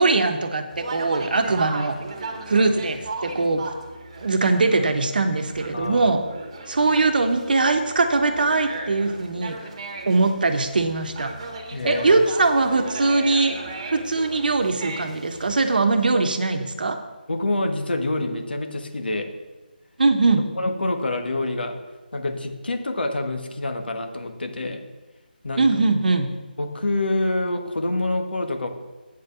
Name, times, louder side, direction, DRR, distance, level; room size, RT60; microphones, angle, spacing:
voice 1, 0.0-1.9 2.5-3.6 4.2-6.2 6.7-9.6 10.1-11.3 11.8-13.5 13.8-17.0 20.0-20.4 25.6-26.3, right 3 dB, 60° right, 7 dB, 1.1 m, -21 dB
Conversation, 0.7-15.7, right 3 dB, 35° right, 1.2 m, -37 dB
voice 2, 5.7-6.1 11.7-12.2 16.1-16.2 17.3-19.3 20.3-21.8 22.1-24.8 25.4-25.6 26.6-28.7, left 2 dB, 75° left, 5 dB, 1.5 m, -26 dB
8.6 x 5.4 x 6.9 m, 1.2 s
figure-of-eight pair, 165°, 5 cm